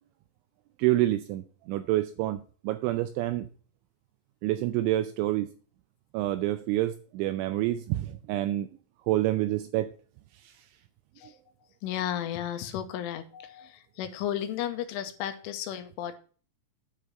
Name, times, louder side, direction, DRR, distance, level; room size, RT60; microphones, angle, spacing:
voice 1, 0.8-3.5 4.4-5.5 6.1-8.7 9.1-9.9, right 15 dB, 85° right, 2.7 m, -27 dB
voice 2, 11.8-16.2, left 11 dB, 80° left, 3.2 m, -34 dB
9.7 x 5.0 x 7.6 m
omnidirectional pair, 5.9 m